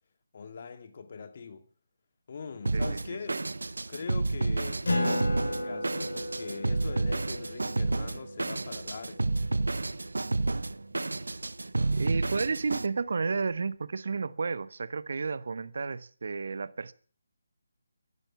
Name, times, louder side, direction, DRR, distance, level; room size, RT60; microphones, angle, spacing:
voice 1, 0.3-1.6 2.3-3.4 3.9-9.3, left 5 dB, 50° left, 2.4 m, -42 dB
Drum kit, 2.7-12.9, right 2 dB, 80° right, 0.9 m, -30 dB
Acoustic guitar, 4.8-9.8, left 1 dB, 75° left, 5.7 m, -34 dB
voice 2, 11.9-16.9, right 4 dB, 60° right, 1.2 m, -32 dB
16.5 x 11.5 x 7.2 m
figure-of-eight pair, 155°, 0 cm